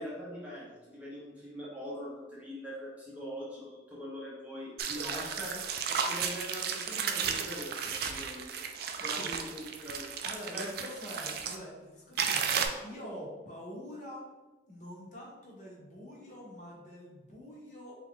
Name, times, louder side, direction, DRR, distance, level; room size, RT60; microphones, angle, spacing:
voice 1, 0.0-5.6 5.9-8.5 9.0-10.1 10.5-10.7 11.2-11.3, equal, 5° right, -6 dB, 0.7 m, -42 dB
sound 1, 4.8-11.6 12.2-12.7, right 7 dB, 55° right, 0.3 m, -34 dB
voice 2, 8.9-9.3 10.2-14.2 14.6-18.0, equal, 40° left, -4 dB, 1.0 m, -45 dB
3.7 x 2.4 x 3.6 m, 1.2 s
head